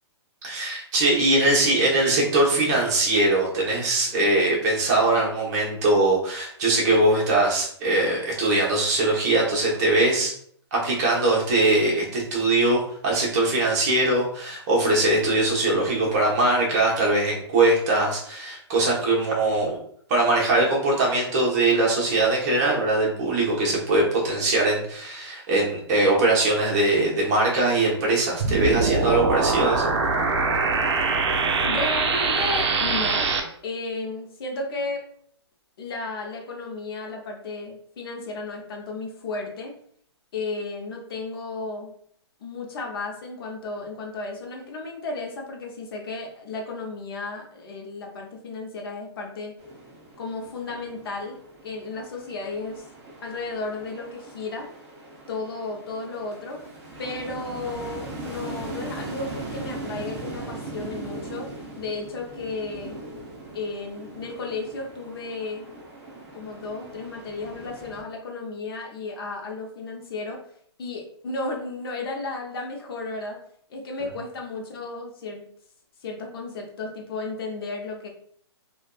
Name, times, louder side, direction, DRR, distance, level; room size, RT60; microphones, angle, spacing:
voice 1, 0.4-10.3 10.7-19.8 20.1-29.9, right 2 dB, 35° right, -3 dB, 0.9 m, -21 dB
sound 1, 28.4-33.4, right 4 dB, 80° right, 0.5 m, -23 dB
voice 2, 31.6-33.3 33.6-35.0 35.8-39.7 40.3-41.9 42.4-49.5 50.2-52.9 53.2-54.7 55.3-56.6 57.0-61.5 61.8-63.0 63.5-65.7 66.3-70.4 70.8-73.4 73.7-75.4 76.0-78.1, left 3 dB, 55° left, 1 dB, 0.6 m, -33 dB
sound 2, 49.6-68.0, right 2 dB, 15° right, 0.5 m, -40 dB
2.5 x 2.3 x 2.2 m, 0.62 s
hypercardioid pair, 150°, 14 cm